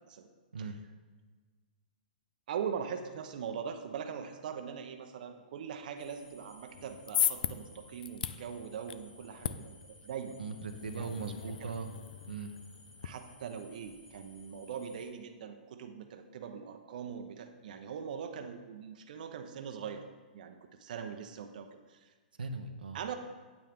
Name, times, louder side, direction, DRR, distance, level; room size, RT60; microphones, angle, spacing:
voice 1, 2.5-9.8 10.0-10.4 10.9-11.7 13.0-20.0 20.3-22.1 22.9-23.2, right 7 dB, 65° right, 6 dB, 0.8 m, -41 dB
sound 1, 6.0-15.1, left 1 dB, 20° left, 2.4 m, -59 dB
sound 2, 6.7-13.1, left 9 dB, 70° left, 0.5 m, -38 dB
voice 2, 10.4-11.9 12.3-12.5 22.4-23.0, right 4 dB, 90° right, 5 dB, 0.8 m, -39 dB
9.1 x 8.8 x 3.6 m, 1.4 s
hypercardioid pair, 130°, 5 cm